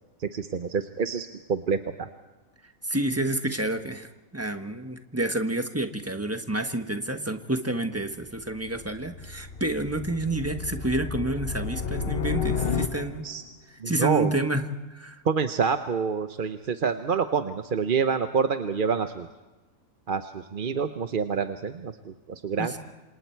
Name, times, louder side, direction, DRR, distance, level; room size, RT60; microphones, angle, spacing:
voice 1, 0.2-2.1 13.2-13.4 13.8-14.3 15.2-19.3 20.1-22.8, right 6 dB, 45° right, 8 dB, 0.9 m, -27 dB
voice 2, 2.8-4.1 4.3-13.3 13.9-14.6 14.9-15.2 22.6-22.7, right 1 dB, 10° right, 7 dB, 1.3 m, -29 dB
sound 1, 8.2-13.4, left 6 dB, 50° left, 1.1 m, -32 dB
28.0 x 26.5 x 4.6 m, 1.1 s
omnidirectional pair, 1.4 m